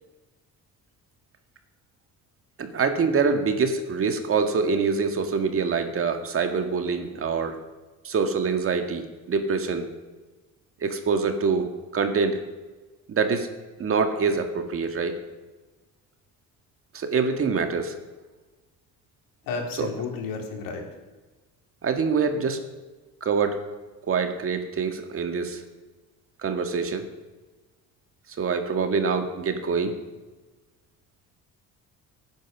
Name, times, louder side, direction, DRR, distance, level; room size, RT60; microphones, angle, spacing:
voice 1, 2.6-7.6 8.0-9.9 10.8-12.4 13.1-13.5 13.8-15.2 16.9-18.0 19.8-19.9 21.8-22.6 23.2-23.6 24.1-25.6 26.4-27.1 28.4-30.0, right 5 dB, 40° right, 6 dB, 1.9 m, -25 dB
voice 2, 19.5-20.8, left 4 dB, 80° left, 2 dB, 3.6 m, -32 dB
22.0 x 9.4 x 6.1 m, 1.2 s
cardioid pair, 120°, 33 cm